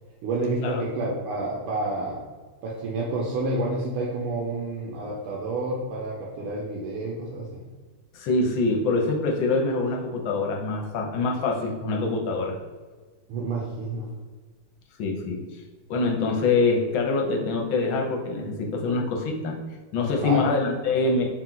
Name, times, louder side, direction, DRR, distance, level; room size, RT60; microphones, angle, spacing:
voice 1, 0.2-2.2 2.6-7.6 13.3-14.1 20.2-20.5, right 2 dB, 80° right, -4 dB, 1.5 m, -29 dB
voice 2, 8.1-12.6 15.0-15.4 15.9-19.6 19.9-21.2, left 3 dB, 75° left, 1 dB, 1.4 m, -25 dB
4.2 x 2.3 x 3.8 m, 1.4 s
omnidirectional pair, 2.3 m